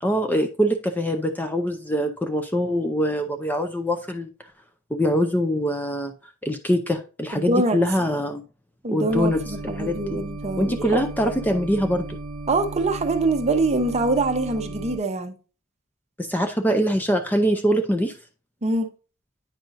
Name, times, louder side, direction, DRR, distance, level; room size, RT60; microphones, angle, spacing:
voice 1, 0.0-4.3 4.9-6.1 6.4-8.4 8.9-10.2 10.6-12.2 16.2-18.2, equal, 10° left, 0.5 m, -23 dB
voice 2, 7.3-7.8 8.8-11.0 12.5-15.3 18.6-18.9, right 2 dB, 30° right, 0.7 m, -24 dB
sound 1, 9.1-15.0, right 2 dB, 70° right, 0.7 m, -35 dB
9.0 x 5.3 x 2.6 m
head